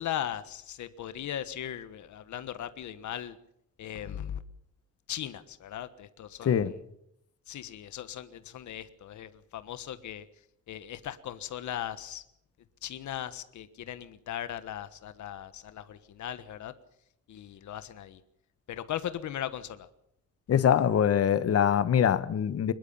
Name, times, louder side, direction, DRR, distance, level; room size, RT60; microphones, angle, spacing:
voice 1, 0.0-3.4 3.8-4.4 5.1-6.6 7.5-10.2 10.7-12.2 12.8-16.7 17.3-18.2 18.7-19.9, left 11 dB, 65° left, 1.4 m, -38 dB
voice 2, 6.4-6.7 20.5-22.7, left 9 dB, 45° left, 1.3 m, -24 dB
23.5 x 21.0 x 5.7 m
cardioid pair, 160°, 32 cm